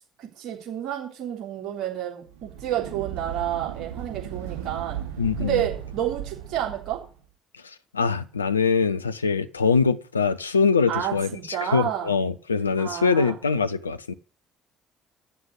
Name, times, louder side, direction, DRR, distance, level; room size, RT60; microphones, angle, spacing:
voice 1, 0.2-5.0 5.4-7.0 10.9-12.1 12.8-13.4, right 11 dB, 60° right, 3.7 m, -30 dB
sound 1, 2.3-7.1, right 9 dB, 75° right, 1.8 m, -36 dB
voice 2, 5.2-5.6 7.9-14.1, left 5 dB, 90° left, 0.5 m, -23 dB
9.5 x 6.8 x 8.0 m
figure-of-eight pair, 50°, 0 cm